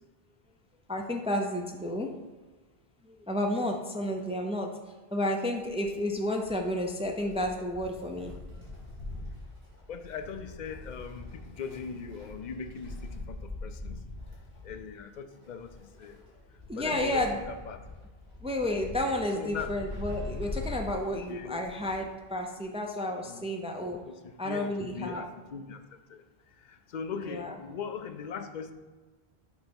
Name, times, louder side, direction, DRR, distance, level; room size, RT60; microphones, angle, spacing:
voice 1, 0.9-2.1 3.0-4.7 5.1-8.3 16.7-17.4 18.4-24.0 24.4-25.2 27.2-27.5, left 1 dB, 10° right, 2 dB, 0.4 m, -31 dB
Wind, 5.6-22.2 22.5-22.6 23.6-23.7, left 2 dB, 60° right, 2.3 m, -43 dB
voice 2, 9.9-14.0 14.6-16.3 16.8-17.8 19.3-19.7 21.0-21.6 23.2-23.5 24.1-28.7, left 6 dB, 55° left, 9 dB, 0.6 m, -40 dB
6.3 x 3.4 x 5.2 m, 1.3 s
omnidirectional pair, 1.1 m